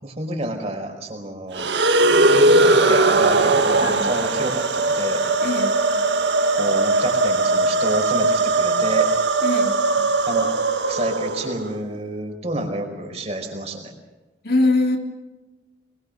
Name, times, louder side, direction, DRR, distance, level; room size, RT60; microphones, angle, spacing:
voice 1, 0.0-1.7 2.6-5.2 6.5-9.1 10.3-10.5 10.9-13.9, right 1 dB, 35° right, 3 dB, 5.0 m, -29 dB
sound 1, 1.5-11.8, right 2 dB, 70° right, 1.7 m, -19 dB
voice 2, 3.8-4.1 5.4-5.8 9.4-9.8 14.4-15.0, left 2 dB, 55° left, 3 dB, 3.1 m, -22 dB
25.0 x 22.5 x 6.6 m, 1.1 s
head